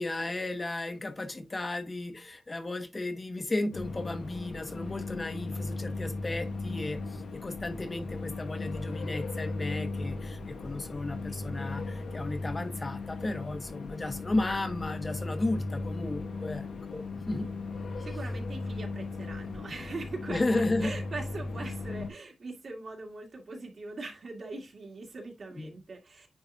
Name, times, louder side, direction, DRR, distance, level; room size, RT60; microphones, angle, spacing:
voice 1, 0.0-17.5 18.0-18.1 20.3-20.9 25.5-25.8, left 2 dB, 30° left, 1.1 m, -34 dB
sound 1, 3.7-22.1, left 3 dB, 85° left, 1.3 m, -37 dB
voice 2, 18.0-20.4 20.8-26.3, right 3 dB, 55° right, 2.0 m, -41 dB
9.5 x 3.8 x 2.8 m
wide cardioid pair, 115°, 0 cm